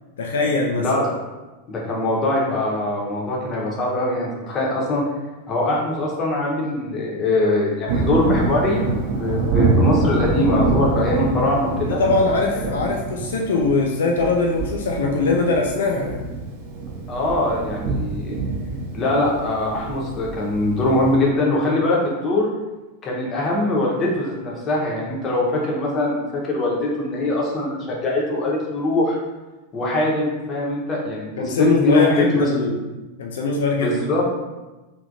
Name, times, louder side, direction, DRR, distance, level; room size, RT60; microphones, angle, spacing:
voice 1, 0.2-0.9 11.9-16.2 31.4-32.8 33.2-34.0, left 3 dB, 60° left, 0 dB, 0.3 m, -21 dB
voice 2, 0.8-1.1 1.7-5.0 5.5-8.9 9.2-12.0 12.6-12.8 17.1-18.4 18.9-22.5 23.0-29.2 29.7-32.5 33.8-34.2, left 2 dB, 30° left, -3 dB, 0.8 m, -22 dB
Thunder, 7.9-21.2, right 3 dB, 50° right, 0.6 m, -25 dB
3.4 x 2.7 x 2.6 m, 1.1 s
figure-of-eight pair, 90°, 0 cm